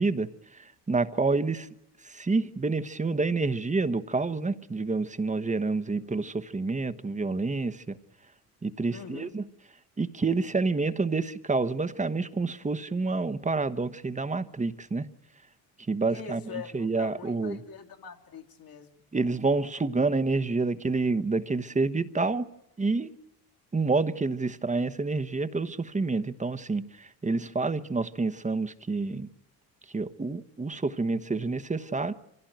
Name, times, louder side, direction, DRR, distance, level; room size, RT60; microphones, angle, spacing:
voice 1, 0.0-1.7 2.0-8.0 8.6-9.5 10.0-15.0 15.9-17.6 19.1-22.5 22.8-23.1 23.7-29.3 29.9-32.1, right 3 dB, 20° right, 1.1 m, -28 dB
voice 2, 8.9-9.3 16.1-18.9, left 7 dB, 60° left, 2.7 m, -43 dB
24.5 x 16.5 x 9.2 m
supercardioid pair, 75°, 40 cm